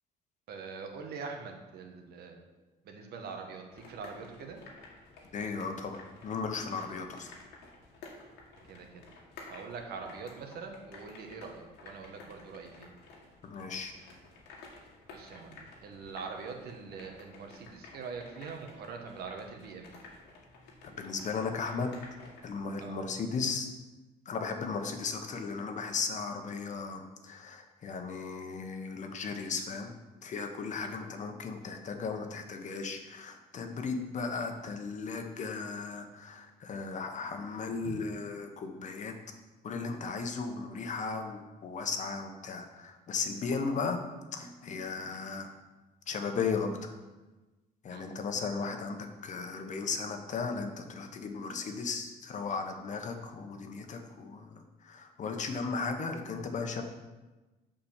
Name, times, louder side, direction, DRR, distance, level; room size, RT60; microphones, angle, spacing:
voice 1, 0.5-2.4 2.8-4.6 6.9-7.0 8.7-9.0 9.5-12.9 15.1-19.9 22.8-23.0 30.8-30.9 37.8-38.0 47.9-48.1, right 5 dB, 70° right, 3 dB, 1.6 m, -43 dB
sound 1, 3.7-22.5, left 3 dB, 90° left, 1.9 m, -53 dB
voice 2, 5.3-7.3 13.4-13.9 20.8-21.9 22.4-23.7 24.2-29.9 30.2-39.2 39.6-44.0 44.3-45.5 46.1-46.7 47.8-56.8, left 4 dB, 45° left, 5 dB, 1.2 m, -36 dB
7.2 x 5.3 x 7.2 m, 1.2 s
cardioid pair, 110°, 17 cm